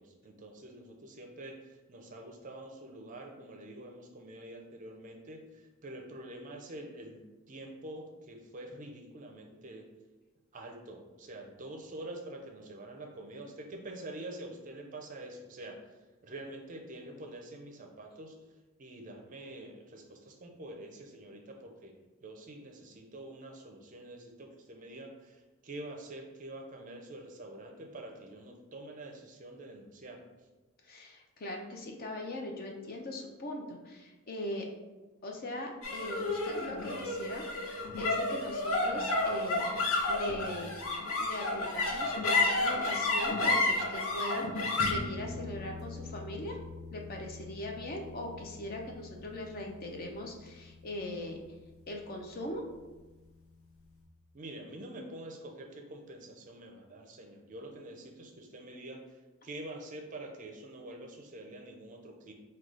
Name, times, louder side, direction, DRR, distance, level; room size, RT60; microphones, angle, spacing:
voice 1, 0.0-9.8 10.5-15.8 16.2-18.4 18.8-21.9 22.2-30.3 54.3-59.0 59.4-62.3, right 1 dB, 35° right, 2 dB, 0.5 m, -46 dB
voice 2, 30.8-34.7 35.2-39.8 40.1-40.7 41.2-46.6 46.9-51.4 51.9-52.6, left 1 dB, 40° left, 1 dB, 0.5 m, -40 dB
sound 1, 35.8-52.4, left 2 dB, 70° left, 0.8 m, -33 dB
4.7 x 2.3 x 3.7 m, 1.2 s
head